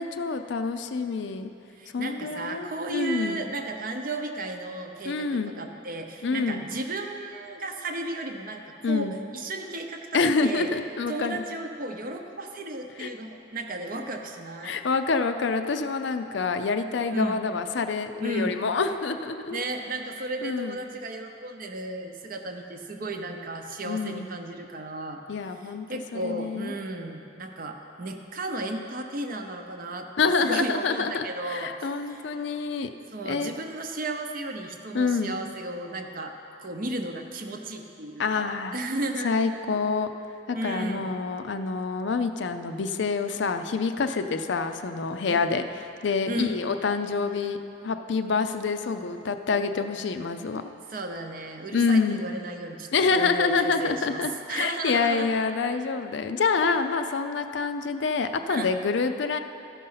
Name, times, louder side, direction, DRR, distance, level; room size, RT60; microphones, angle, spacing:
voice 1, 0.0-1.5 1.9-3.4 5.1-5.5 6.2-6.6 8.8-9.1 10.1-11.4 13.0-13.1 14.6-19.6 20.4-20.8 23.8-24.3 25.3-25.9 26.1-26.7 30.2-32.9 33.3-33.5 34.9-35.3 38.2-38.8 39.2-40.1 40.5-45.6 46.0-47.6 47.8-50.6 51.7-52.2 52.9-59.4, left 4 dB, 60° left, 8 dB, 0.5 m, -27 dB
voice 2, 1.8-10.7 11.1-14.8 17.1-17.4 18.2-18.6 19.5-32.2 33.1-36.4 36.6-39.4 40.5-41.1 45.3-45.5 46.3-46.6 50.9-55.3 58.5-58.7, right 2 dB, 45° right, 4 dB, 0.7 m, -34 dB
14.0 x 5.4 x 5.6 m, 2.7 s
head